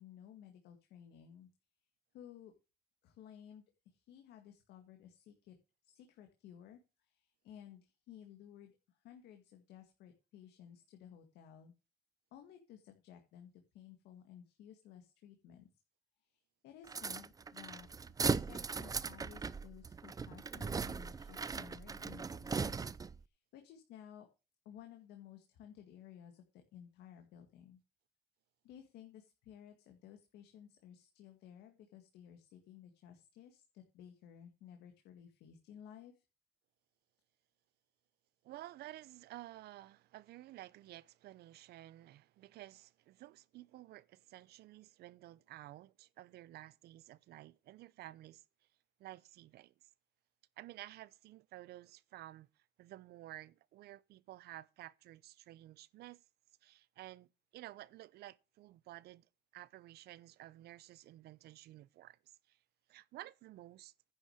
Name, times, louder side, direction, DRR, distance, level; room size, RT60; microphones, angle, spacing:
voice 1, 0.0-1.5 2.1-2.5 3.0-5.6 5.8-11.7 12.3-15.7 16.2-17.9 18.3-22.8 23.1-24.3 24.7-27.8 28.6-36.2, left 9 dB, 80° left, 1.8 m, -56 dB
sound 1, 16.9-23.2, right 5 dB, 20° right, 0.5 m, -38 dB
voice 2, 38.4-48.4 49.0-49.7 50.6-52.5 52.8-56.2 56.6-57.3 57.5-59.3 59.5-62.2 62.5-62.6 62.9-63.9, right 15 dB, 70° right, 0.7 m, -53 dB
10.5 x 6.4 x 6.5 m
cardioid pair, 110°, 17 cm